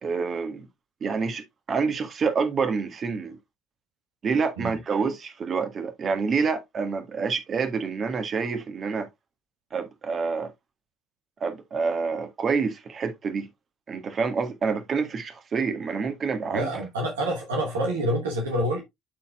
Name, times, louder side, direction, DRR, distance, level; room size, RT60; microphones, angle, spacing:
voice 1, 0.0-0.7 1.0-3.4 4.2-9.1 9.7-10.5 11.4-13.5 13.9-16.7, right 5 dB, 45° right, 1.7 m, -27 dB
voice 2, 16.5-18.8, right 1 dB, 85° right, 1.2 m, -27 dB
12.0 x 4.3 x 2.3 m
hypercardioid pair, 55°, 0 cm